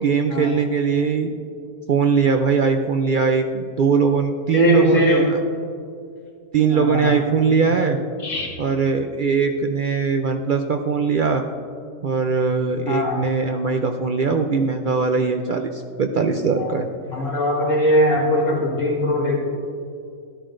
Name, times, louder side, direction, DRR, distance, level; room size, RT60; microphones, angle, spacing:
voice 1, 0.0-1.3 1.9-5.4 6.5-8.0 8.6-11.4 12.0-16.9, right 5 dB, 60° right, 5 dB, 0.5 m, -20 dB
voice 2, 4.5-5.3 6.7-7.2 7.5-7.7 8.2-8.5 12.9-13.3 16.6-16.7 17.0-19.4, equal, 80° left, -3 dB, 2.3 m, -20 dB
13.0 x 12.5 x 2.5 m, 2.4 s
omnidirectional pair, 1.3 m